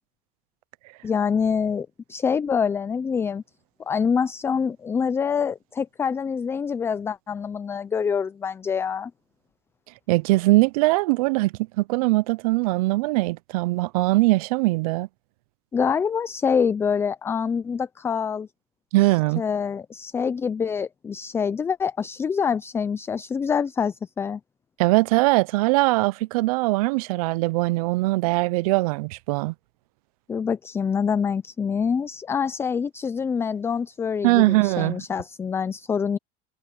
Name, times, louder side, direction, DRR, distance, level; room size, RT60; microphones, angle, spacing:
voice 1, 1.0-3.4 3.9-9.1 15.7-18.5 19.4-24.4 30.3-36.2, left 6 dB, 15° left, 0.3 m, -25 dB
voice 2, 10.1-15.1 18.9-19.4 24.8-29.5 34.2-35.0, right 21 dB, 85° right, 0.5 m, -21 dB
supercardioid pair, 145°, 18 cm